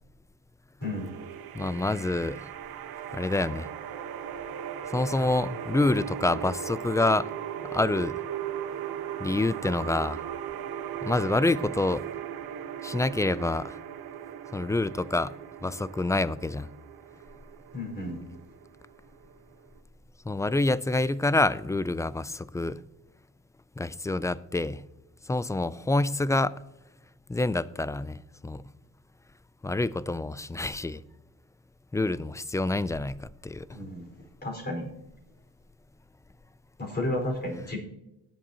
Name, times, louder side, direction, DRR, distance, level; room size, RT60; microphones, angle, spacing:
sound 1, 0.8-19.8, right 9 dB, 80° right, 1.0 m, -38 dB
voice 1, 1.5-2.5 3.1-3.7 4.9-7.3 7.7-8.2 9.2-10.2 11.0-12.0 12.8-13.8 14.5-15.3 15.6-16.7 20.3-22.8 23.8-24.8 25.3-26.6 27.3-28.6 29.6-31.0 31.9-33.7, left 2 dB, 10° left, 0.3 m, -27 dB
voice 2, 17.7-18.2 33.7-34.0 34.4-34.9 36.8-37.8, left 1 dB, 25° left, 4.7 m, -32 dB
18.5 x 7.5 x 2.8 m
cardioid pair, 95°, 36 cm